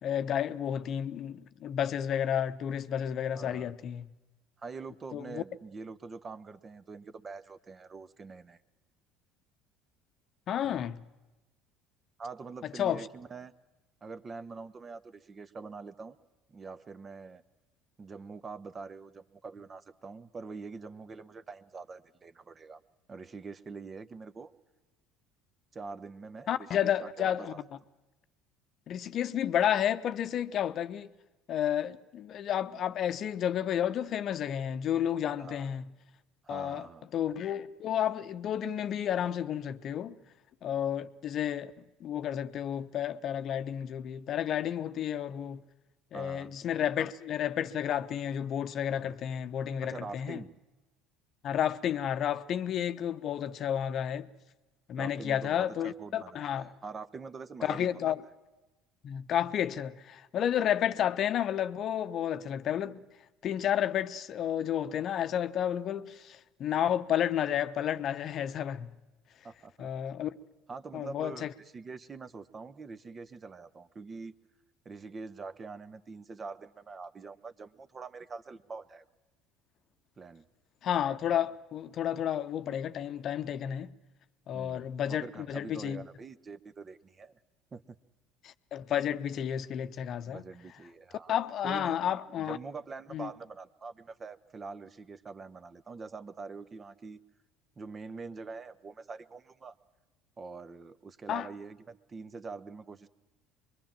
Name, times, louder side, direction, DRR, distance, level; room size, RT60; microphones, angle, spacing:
voice 1, 0.0-4.1 5.1-5.4 10.5-11.0 12.6-13.1 26.5-27.5 28.9-31.1 31.5-35.8 36.5-36.9 37.1-40.2 40.6-45.6 46.1-50.4 51.4-54.3 54.9-56.7 57.6-58.2 59.0-63.0 63.4-68.9 69.8-70.4 70.9-71.5 80.8-83.9 84.5-86.0 88.4-90.4 91.3-92.6 93.1-93.3 101.3-101.5, left 10 dB, 45° left, 0.9 m, -31 dB
voice 2, 3.3-3.7 4.6-8.6 10.6-10.9 12.2-13.5 14.0-16.2 16.5-17.4 18.0-22.8 23.1-24.5 25.7-27.6 35.4-35.7 36.4-37.1 46.1-46.5 49.0-49.1 49.8-50.5 55.0-58.0 69.4-69.9 70.7-74.3 74.8-79.0 80.2-80.4 84.5-87.4 87.7-88.0 90.2-91.3 91.6-92.1 92.4-97.2 97.8-99.7 100.4-103.1, right 4 dB, 30° right, 1.3 m, -44 dB
25.0 x 22.5 x 7.6 m
figure-of-eight pair, 65°, 0 cm